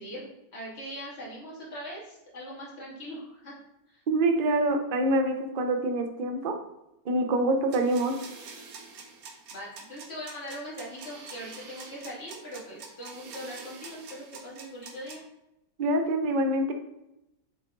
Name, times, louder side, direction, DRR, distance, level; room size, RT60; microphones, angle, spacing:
voice 1, 0.0-3.5 3.9-4.0 9.5-15.2, equal, 40° left, -6 dB, 2.4 m, -41 dB
voice 2, 4.1-6.6 7.0-8.2 15.8-16.7, right 1 dB, 50° right, 5 dB, 0.6 m, -25 dB
sound 1, 7.7-15.2, right 4 dB, 65° right, 1.3 m, -45 dB
7.4 x 3.5 x 3.8 m, 0.89 s
omnidirectional pair, 1.7 m